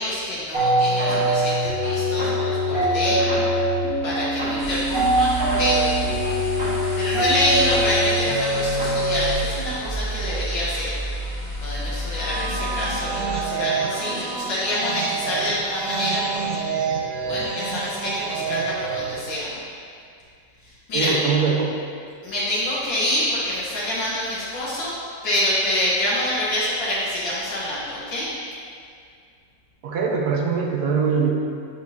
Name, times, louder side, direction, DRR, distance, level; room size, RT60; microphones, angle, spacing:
voice 1, 0.0-3.2 4.0-6.1 6.9-11.0 11.6-16.6 17.3-19.6 20.6-21.1 22.2-25.0 25.2-28.3, left 1 dB, 80° left, -8 dB, 1.7 m, -26 dB
sound 1, 0.5-9.3, equal, 50° right, 1.9 m, -22 dB
sound 2, 4.6-13.2, right 1 dB, 35° left, 0.5 m, -32 dB
sound 3, 12.0-19.4, right 6 dB, 90° right, 0.6 m, -28 dB
voice 2, 20.9-21.8 29.8-31.3, right 5 dB, 65° right, 0 dB, 1.1 m, -22 dB
8.3 x 4.4 x 2.7 m, 2.3 s
omnidirectional pair, 2.0 m